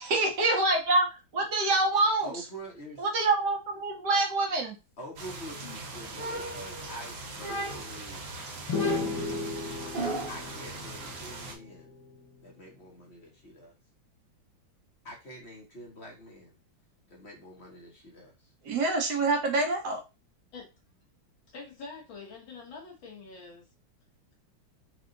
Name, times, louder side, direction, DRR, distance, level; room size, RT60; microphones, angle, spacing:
voice 1, 0.0-2.3 3.0-4.7 18.6-20.0, right 2 dB, 60° right, 2 dB, 1.7 m, -26 dB
voice 2, 2.2-3.1 5.0-8.3 10.3-11.9 12.4-13.7 15.0-16.6 17.1-18.5, equal, 40° left, 0 dB, 1.2 m, -46 dB
sound 1, 5.2-11.5, right 3 dB, 75° right, 2.0 m, -41 dB
sound 2, 6.2-7.0 7.4-8.1 8.7-10.5, right 1 dB, 35° right, 1.0 m, -35 dB
sound 3, 8.7-12.3, left 4 dB, 60° left, 1.7 m, -35 dB
voice 3, 21.5-23.6, left 4 dB, 75° left, -2 dB, 2.0 m, -45 dB
4.8 x 2.5 x 3.8 m, 0.26 s
omnidirectional pair, 2.1 m